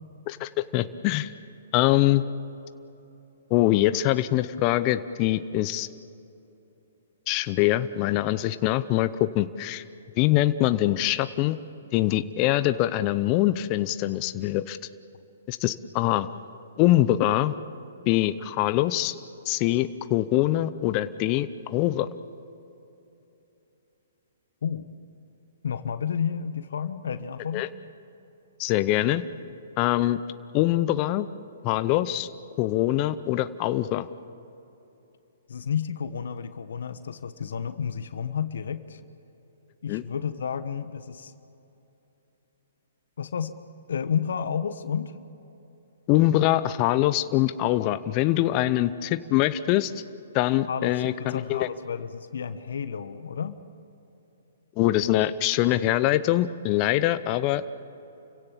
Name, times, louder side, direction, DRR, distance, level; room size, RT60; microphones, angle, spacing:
voice 1, 0.3-1.3 1.7-2.2 3.5-5.9 7.3-9.8 10.2-11.6 11.9-14.8 15.5-16.3 16.8-17.5 18.1-19.1 19.5-22.1 27.5-27.7 28.6-29.2 29.8-30.2 30.5-31.3 31.6-32.3 32.6-34.1 39.9-40.0 46.1-49.9 50.3-51.7 54.8-57.6, left 15 dB, 35° left, 13 dB, 0.7 m, -23 dB
voice 2, 25.6-27.6 35.5-39.0 39.8-41.3 43.2-43.5 43.9-45.2 50.7-53.6, left 7 dB, 70° left, 11 dB, 1.1 m, -31 dB
30.0 x 16.5 x 7.5 m, 2.9 s
hypercardioid pair, 130°, 0 cm